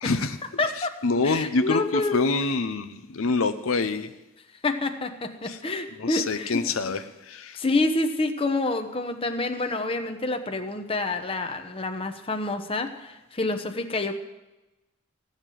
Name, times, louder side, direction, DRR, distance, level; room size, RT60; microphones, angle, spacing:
voice 1, 0.0-0.4 1.0-4.1 5.5-5.6 6.0-7.6, left 3 dB, 70° left, 9 dB, 0.7 m, -26 dB
voice 2, 0.6-0.9 1.2-2.2 4.6-6.9 7.5-14.1, left 2 dB, 25° left, 6 dB, 0.9 m, -28 dB
16.0 x 6.6 x 9.1 m, 1.0 s
head